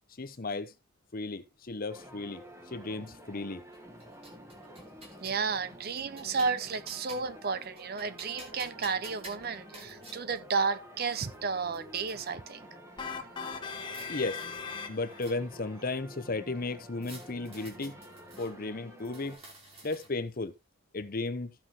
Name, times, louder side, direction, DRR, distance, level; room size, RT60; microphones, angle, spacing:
voice 1, 0.2-0.7 1.1-3.6 14.1-14.5 14.9-18.0 18.4-19.4 19.8-20.5 20.9-21.5, left 3 dB, 45° left, 0.8 m, -35 dB
sound 1, 1.9-19.4, equal, 15° right, 1.2 m, -50 dB
sound 2, 3.7-5.4 5.9-7.4 7.8-10.2 11.0-11.1 11.3-12.2 13.4-14.1 14.4-15.7 17.0-18.5 19.0-20.3, right 1 dB, 30° right, 2.8 m, -51 dB
voice 2, 5.2-12.7, right 5 dB, 45° right, 0.6 m, -32 dB
sound 3, 13.0-15.4, left 5 dB, 20° left, 1.2 m, -39 dB
15.0 x 5.8 x 2.9 m
head